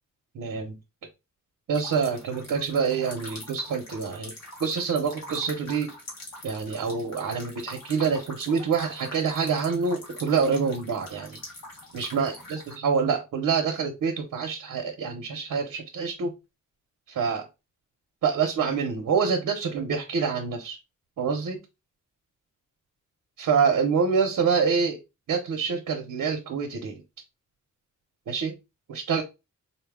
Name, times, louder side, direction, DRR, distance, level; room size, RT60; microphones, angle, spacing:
voice 1, 0.3-0.8 1.7-4.3 4.6-5.9 6.4-11.4 11.9-16.3 17.1-17.4 18.2-20.8 21.2-21.6 23.4-25.0 25.3-27.0 28.3-28.6 28.9-29.2, right 5 dB, 70° right, 2 dB, 0.8 m, -26 dB
sound 1, 1.7-12.8, left 1 dB, 55° left, 1.4 m, -44 dB
4.2 x 2.2 x 3.4 m, 0.25 s
wide cardioid pair, 165°, 32 cm